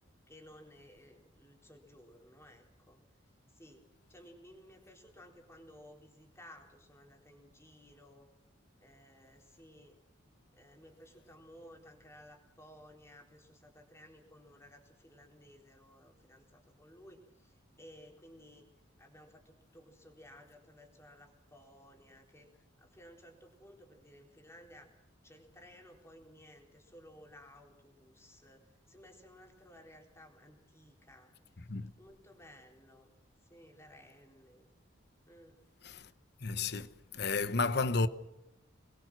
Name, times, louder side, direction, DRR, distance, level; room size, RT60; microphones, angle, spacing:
voice 1, 0.3-3.0 3.5-8.3 8.8-10.0 10.5-18.6 19.0-22.5 22.8-24.9 25.2-31.3 31.6-33.1 33.4-34.7 35.3-35.6, equal, 15° left, 4.0 m, -57 dB
voice 2, 36.4-36.9 37.1-38.1, left 3 dB, 55° left, 1.1 m, -31 dB
27.0 x 22.0 x 6.2 m
head